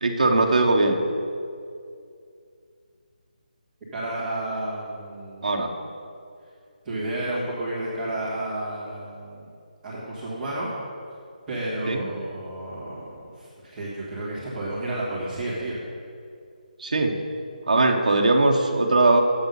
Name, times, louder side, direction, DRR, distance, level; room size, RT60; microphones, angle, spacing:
voice 1, 0.0-1.0 5.4-5.7 11.9-12.0 16.8-17.2 17.7-19.2, right 2 dB, 55° right, 1 dB, 1.0 m, -20 dB
voice 2, 3.9-5.7 6.8-9.5 9.8-10.8 11.5-15.8, right 1 dB, 5° right, -13 dB, 1.6 m, -31 dB
8.7 x 7.2 x 5.4 m, 2.4 s
hypercardioid pair, 180°, 5 cm